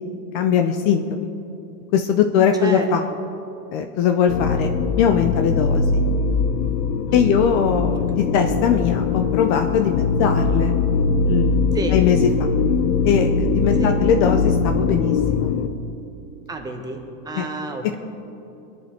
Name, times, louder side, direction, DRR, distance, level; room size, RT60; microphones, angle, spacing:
voice 1, 0.3-1.3 1.9-3.0 3.7-6.0 7.1-10.7 11.3-11.5 11.9-12.6 13.0-15.5 17.4-17.5, left 7 dB, 35° left, 6 dB, 0.7 m, -20 dB
sound 1, 4.3-15.7, left 4 dB, 70° left, 1.2 m, -21 dB
voice 2, 7.1-7.4 11.7-12.0 13.8-13.9 16.5-18.0, right 3 dB, 10° right, 3 dB, 1.1 m, -30 dB
25.5 x 10.5 x 4.4 m, 2.8 s
supercardioid pair, 160°, 45 cm